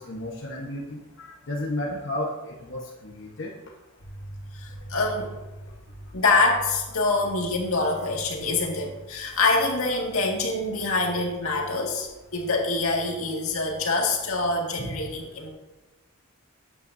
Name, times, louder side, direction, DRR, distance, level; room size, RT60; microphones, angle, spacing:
voice 1, 0.0-3.5, left 1 dB, 60° left, -2 dB, 1.2 m, -33 dB
voice 2, 4.5-5.3 6.1-15.5, left 3 dB, 80° left, 0 dB, 2.0 m, -25 dB
13.5 x 9.2 x 2.7 m, 1.1 s
head